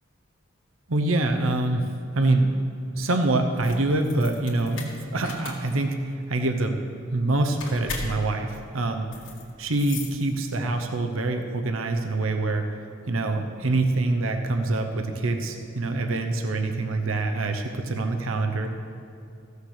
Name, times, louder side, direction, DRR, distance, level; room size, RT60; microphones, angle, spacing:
voice 1, 0.9-1.9 2.1-2.5 2.9-6.8 7.1-9.1 9.6-12.7 13.1-18.7, right 2 dB, 75° right, 5 dB, 0.8 m, -25 dB
sound 1, 3.5-10.8, left 3 dB, 65° left, 1.9 m, -39 dB
15.0 x 6.6 x 6.5 m, 2.5 s
head